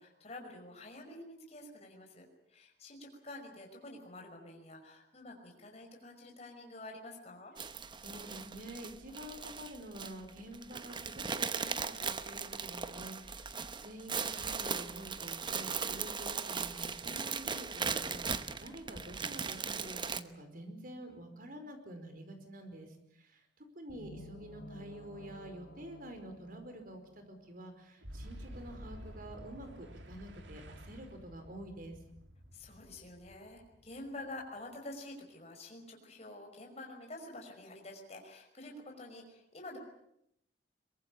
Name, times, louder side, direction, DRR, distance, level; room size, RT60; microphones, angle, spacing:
voice 1, 0.0-7.5 32.5-39.8, left 2 dB, 35° left, 1 dB, 5.6 m, -48 dB
sound 1, 7.6-20.2, right 5 dB, 25° right, 1.0 m, -38 dB
voice 2, 8.0-32.0, right 1 dB, 50° right, 7 dB, 5.0 m, -48 dB
sound 2, 23.9-27.7, equal, 75° left, 5.0 m, -53 dB
Boom, 28.0-34.6, equal, 80° right, 2.9 m, -51 dB
23.0 x 22.5 x 8.7 m, 0.76 s
head